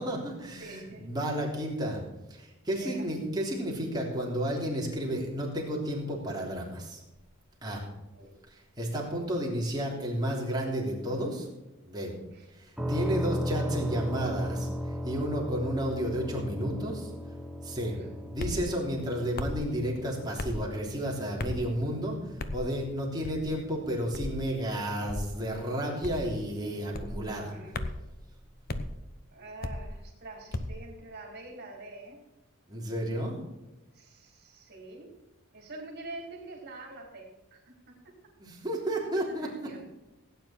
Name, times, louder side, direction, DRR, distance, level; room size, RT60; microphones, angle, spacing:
voice 1, 0.0-2.0 2.3-7.0 7.6-7.8 8.8-11.5 11.8-12.1 12.6-14.7 15.0-17.1 17.6-18.0 18.2-22.2 22.5-27.5 32.7-33.4 38.4-39.7, equal, 20° right, -2 dB, 3.3 m, -32 dB
voice 2, 0.6-1.2 2.8-3.1 8.1-8.3 12.3-12.5 17.9-18.1 27.5-27.9 29.3-32.2 33.9-35.1 35.5-38.1 39.3-39.9, right 2 dB, 50° right, 0 dB, 3.8 m, -46 dB
sound 1, 12.8-26.5, equal, 5° right, 1.0 m, -37 dB
sound 2, 18.4-18.6 19.4-19.6 20.4-20.6 21.4-21.7 22.4-22.6 23.2-23.5 24.1-24.4 25.1-25.3 26.0-26.3 26.9-27.2 27.7-28.0 28.7-28.9 29.6-29.9 30.5-30.8, left 2 dB, 45° left, 0.9 m, -35 dB
16.5 x 9.4 x 4.5 m, 1.0 s
head